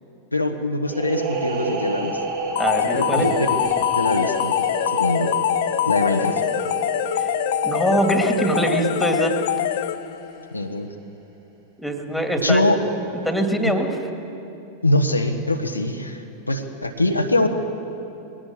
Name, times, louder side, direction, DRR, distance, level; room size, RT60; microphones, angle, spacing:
voice 1, 0.3-2.2 2.9-3.5 3.9-4.5 4.9-5.3 5.9-6.4 10.5-10.9 12.4-12.8 13.6-13.7 14.8-17.5, left 2 dB, 85° left, 3 dB, 1.3 m, -22 dB
sound 1, 0.8-10.3, right 3 dB, 50° right, 3.4 m, -30 dB
sound 2, 2.6-10.3, left 13 dB, 55° left, 0.5 m, -24 dB
voice 2, 2.6-3.3 7.2-7.3 7.6-9.4 11.8-12.6 13.2-14.0, right 1 dB, ahead, 4 dB, 2.2 m, -23 dB
21.0 x 16.5 x 7.5 m, 2.8 s
figure-of-eight pair, 90°, 0 cm